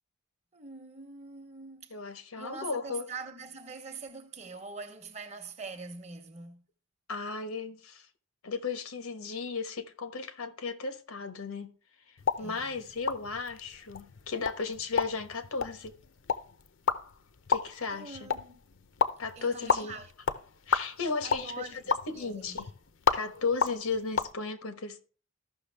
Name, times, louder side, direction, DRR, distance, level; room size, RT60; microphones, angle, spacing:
voice 1, 0.5-2.0 2.4-6.6 12.4-12.7 17.9-18.6 19.4-20.1 21.2-22.7, right 4 dB, 30° right, 0.9 m, -44 dB
voice 2, 1.9-3.1 7.1-8.1 8.4-11.7 12.1-15.9 17.5-18.3 19.2-20.0 20.7-21.8 22.1-22.7 23.1-25.0, left 4 dB, 90° left, 1.1 m, -35 dB
sound 1, 12.2-24.3, left 5 dB, 60° left, 0.6 m, -33 dB
14.0 x 5.9 x 3.4 m
head